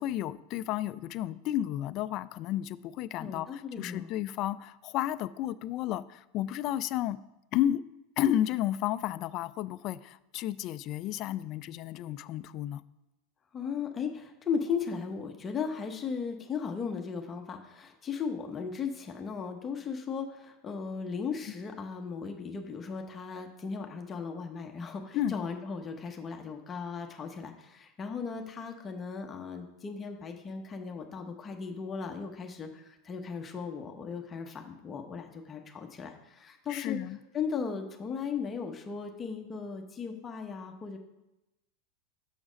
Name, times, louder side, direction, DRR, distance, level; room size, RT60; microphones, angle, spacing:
voice 1, 0.0-7.2 7.5-7.8 8.2-12.8 25.1-25.4 36.7-37.2, left 12 dB, 45° left, 15 dB, 0.4 m, -32 dB
voice 2, 3.2-4.1 13.5-37.0 37.3-41.0, left 6 dB, 25° left, 3 dB, 0.9 m, -37 dB
6.2 x 6.0 x 5.1 m, 0.95 s
supercardioid pair, 125°, 0 cm